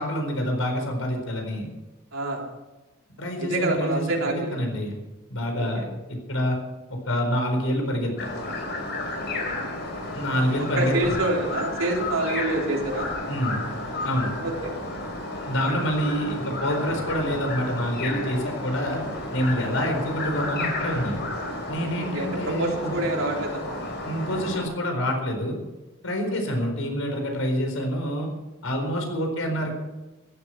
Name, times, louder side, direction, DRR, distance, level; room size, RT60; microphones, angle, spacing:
voice 1, 0.0-1.7 3.2-5.0 5.3-6.6 7.1-8.1 10.1-11.0 13.3-13.6 14.0-14.3 15.5-19.0 19.3-21.2 21.7-22.9 24.0-25.6 26.0-28.3 28.6-29.7, equal, 90° left, 3 dB, 4.5 m, -27 dB
voice 2, 2.1-2.4 3.4-4.5 5.5-5.8 9.1-9.4 10.5-13.1 14.4-14.7 22.0-23.8 26.2-26.7, right 2 dB, 90° right, 0 dB, 3.7 m, -27 dB
sound 1, 8.2-24.6, left 2 dB, 55° left, 4.9 m, -32 dB
15.0 x 12.5 x 5.9 m, 1.1 s
head